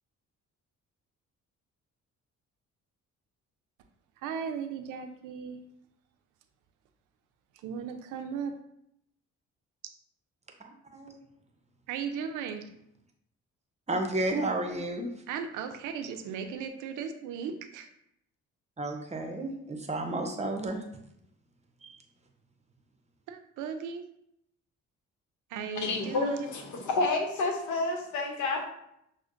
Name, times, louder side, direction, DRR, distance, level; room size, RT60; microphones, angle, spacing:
voice 1, 4.2-5.6 7.6-8.5 11.9-12.6 15.3-17.9 23.3-24.0 25.5-26.5, right 7 dB, 90° right, 7 dB, 0.5 m, -36 dB
voice 2, 13.9-15.1 18.8-20.8 21.8-22.0, right 2 dB, 20° right, 3 dB, 0.7 m, -31 dB
voice 3, 25.8-28.6, left 3 dB, 75° left, 3 dB, 0.8 m, -29 dB
6.1 x 2.1 x 2.5 m, 0.76 s
cardioid pair, 90°, 30 cm